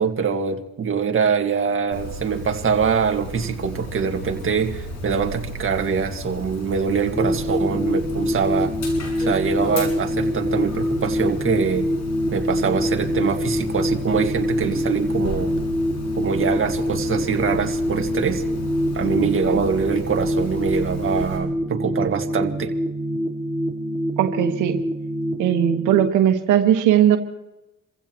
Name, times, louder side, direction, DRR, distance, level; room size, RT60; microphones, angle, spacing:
voice 1, 0.0-8.7 9.2-11.9 12.3-15.5 16.2-18.4 18.9-22.7, right 6 dB, 45° right, 4 dB, 1.9 m, -23 dB
Dog, 1.9-21.4, left 2 dB, 70° left, 6.4 m, -34 dB
sound 1, 7.1-26.1, equal, 10° left, 3.9 m, -25 dB
voice 2, 24.2-24.8 25.4-27.2, right 11 dB, 90° right, 6 dB, 1.4 m, -18 dB
28.5 x 15.5 x 3.0 m, 0.95 s
cardioid pair, 90°, 30 cm